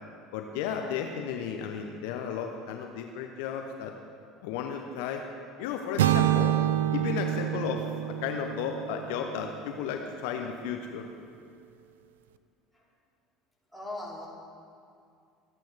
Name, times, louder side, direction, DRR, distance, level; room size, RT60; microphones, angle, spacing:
voice 1, 0.3-3.9 4.4-5.2 5.6-6.6 6.9-11.1, left 7 dB, 60° left, 4 dB, 0.9 m, -34 dB
sound 1, 6.0-10.0, right 12 dB, 70° right, 0.4 m, -27 dB
voice 2, 13.7-14.3, left 2 dB, ahead, -5 dB, 3.3 m, -39 dB
24.0 x 8.9 x 3.6 m, 2.5 s
figure-of-eight pair, 65°, 0 cm